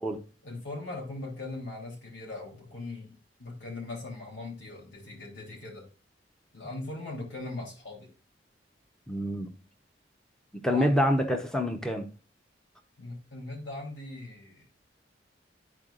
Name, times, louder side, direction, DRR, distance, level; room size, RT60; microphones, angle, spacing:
voice 1, 0.4-5.9 6.5-8.1 10.6-11.0 13.0-14.6, left 2 dB, 80° left, -1 dB, 3.2 m, -40 dB
voice 2, 9.1-9.5 10.5-12.1, equal, 5° left, 4 dB, 0.7 m, -27 dB
12.5 x 4.7 x 2.4 m, 0.34 s
head